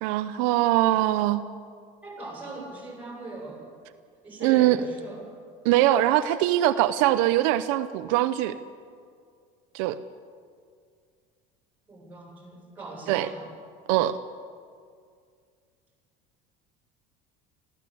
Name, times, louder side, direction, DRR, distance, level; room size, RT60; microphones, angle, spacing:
voice 1, 0.0-1.4 4.4-4.8 5.6-8.6 9.7-10.0 13.1-13.3 13.9-14.2, right 14 dB, 80° right, 11 dB, 0.7 m, -22 dB
voice 2, 2.0-3.7 4.2-5.2 11.9-13.4, right 3 dB, 10° right, -2 dB, 7.9 m, -40 dB
21.5 x 15.0 x 8.4 m, 2.2 s
cardioid pair, 140°, 16 cm